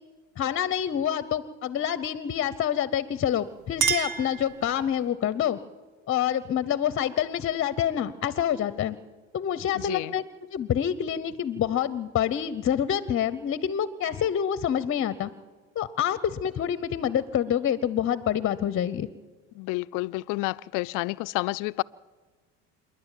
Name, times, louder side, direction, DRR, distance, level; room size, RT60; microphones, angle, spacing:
voice 1, 0.4-5.6 6.1-9.0 9.3-10.2 10.5-15.3 15.7-19.1, left 9 dB, 40° left, 16 dB, 0.9 m, -27 dB
Chink clink, 3.2-5.1, right 7 dB, 60° right, 2.3 m, -30 dB
voice 2, 9.8-10.1 19.6-21.8, left 22 dB, 65° left, 18 dB, 0.6 m, -30 dB
27.0 x 11.0 x 9.2 m, 1.4 s
supercardioid pair, 95°, 33 cm